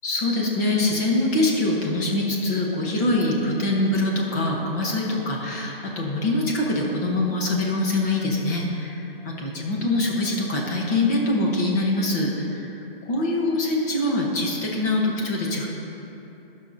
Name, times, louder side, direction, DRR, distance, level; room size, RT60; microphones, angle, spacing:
voice 1, 0.0-9.0 9.2-12.7 13.1-15.7, left 2 dB, 15° left, -2 dB, 0.9 m, -24 dB
19.5 x 6.5 x 2.7 m, 3.0 s
hypercardioid pair, 165°, 29 cm